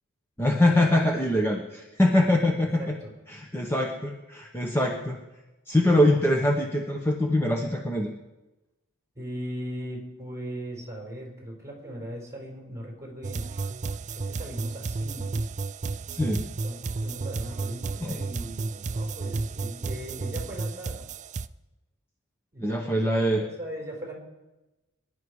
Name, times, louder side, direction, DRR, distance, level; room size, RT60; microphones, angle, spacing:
voice 1, 0.4-2.9 3.3-5.2 5.7-8.1 16.1-16.4 18.0-18.2 22.6-23.4, left 1 dB, 10° left, 1 dB, 1.1 m, -23 dB
voice 2, 2.8-3.1 9.1-13.7 14.1-15.3 16.6-21.1 22.5-24.1, equal, 15° right, -1 dB, 4.5 m, -39 dB
sound 1, 13.2-21.5, right 3 dB, 35° right, 0.4 m, -32 dB
24.0 x 11.0 x 4.9 m, 1.1 s
head